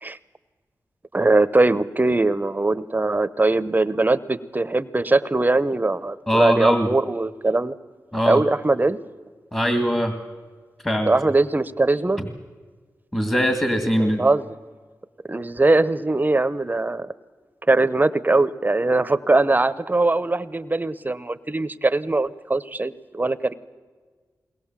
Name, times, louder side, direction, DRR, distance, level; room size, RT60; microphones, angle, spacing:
voice 1, 1.1-7.7 8.3-9.0 11.1-12.2 14.0-14.5 15.3-17.1 17.7-23.5, right 2 dB, 25° right, 15 dB, 0.9 m, -21 dB
voice 2, 6.3-6.9 8.1-8.4 9.5-10.1 10.8-11.1 12.2-12.3 13.1-14.2, equal, 15° left, 6 dB, 2.2 m, -21 dB
21.5 x 19.0 x 7.4 m, 1.5 s
cardioid pair, 65°, 7 cm